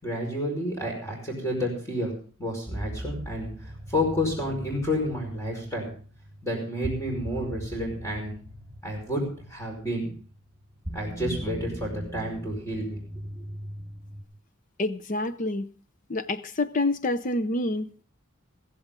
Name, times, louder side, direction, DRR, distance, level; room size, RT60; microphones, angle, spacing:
voice 1, 0.0-2.1 2.4-5.9 6.4-8.3 8.8-9.2 9.5-10.1 10.9-13.0 13.4-13.5, left 1 dB, 15° left, 0 dB, 5.2 m, -30 dB
sound 1, 2.7-14.2, equal, 15° right, 5.9 m, -40 dB
voice 2, 14.8-15.7 16.1-18.0, left 2 dB, 40° left, 12 dB, 0.7 m, -27 dB
15.5 x 15.5 x 3.8 m, 0.42 s
head